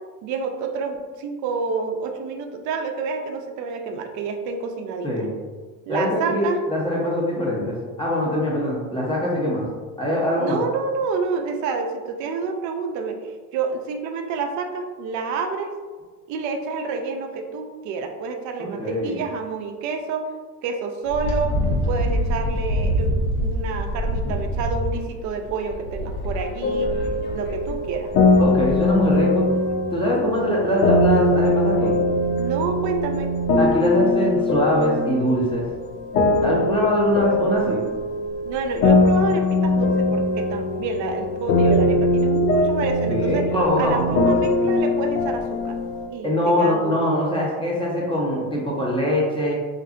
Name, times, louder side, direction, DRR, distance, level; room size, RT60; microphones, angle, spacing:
voice 1, 0.2-5.1 5.9-6.6 10.4-13.2 13.5-15.7 16.3-20.3 20.6-21.6 21.9-26.9 27.3-28.1 30.2-30.6 32.4-33.4 38.4-43.5 43.8-45.8 46.1-46.3 46.6-47.0, right 4 dB, 40° right, 4 dB, 0.4 m, -28 dB
voice 2, 5.9-9.6 10.0-10.6 18.6-19.2 28.4-29.5 29.9-31.9 33.6-35.6 36.4-37.8 43.1-44.2 46.2-49.6, equal, 10° left, -4 dB, 0.6 m, -22 dB
Wind, 21.0-29.2, equal, 65° left, 0.9 m, -26 dB
sound 1, 26.6-46.1, left 2 dB, 85° left, 0.5 m, -21 dB
2.6 x 2.5 x 2.4 m, 1.4 s
hypercardioid pair, 90°, 46 cm